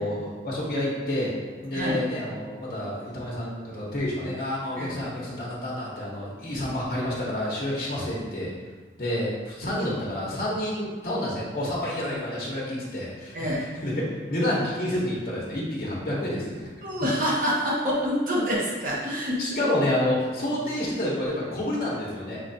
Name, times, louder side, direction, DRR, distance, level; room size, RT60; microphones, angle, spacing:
voice 1, 0.0-1.3 1.6-8.5 9.0-13.9 14.3-16.7 19.4-22.4, left 1 dB, 55° left, -6 dB, 0.7 m, -29 dB
voice 2, 11.8-12.2 13.3-13.7 16.8-19.7, equal, 50° right, -4 dB, 0.7 m, -27 dB
4.5 x 2.3 x 2.6 m, 1.4 s
head